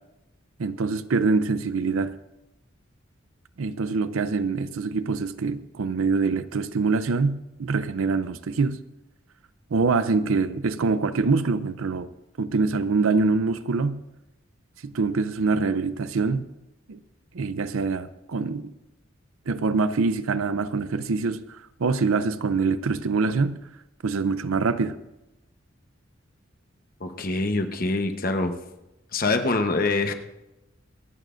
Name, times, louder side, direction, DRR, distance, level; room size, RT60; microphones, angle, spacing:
voice 1, 0.6-2.1 3.6-8.8 9.7-12.1 12.4-14.0 14.8-16.5 16.9-17.0 17.3-18.7 19.5-23.6 24.0-24.9, right 4 dB, 85° right, 0.6 m, -24 dB
voice 2, 27.0-28.5 29.1-30.1, left 3 dB, 45° left, 1.0 m, -24 dB
27.0 x 9.0 x 2.5 m
head